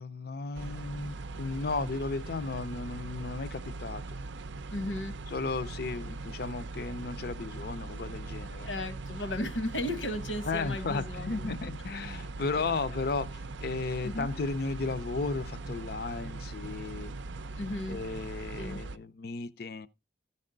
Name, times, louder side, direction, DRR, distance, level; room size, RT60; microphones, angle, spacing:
voice 1, 0.0-4.2 5.3-8.7 10.5-17.1 17.9-19.9, left 3 dB, 55° left, 0.5 m, -35 dB
sound 1, 0.5-19.0, right 3 dB, 75° right, 0.5 m, -40 dB
voice 2, 4.7-5.1 8.7-11.5 12.5-12.7 14.0-14.3 17.6-18.0 18.6-18.8, left 1 dB, 85° left, 1.1 m, -35 dB
14.0 x 5.4 x 3.8 m
head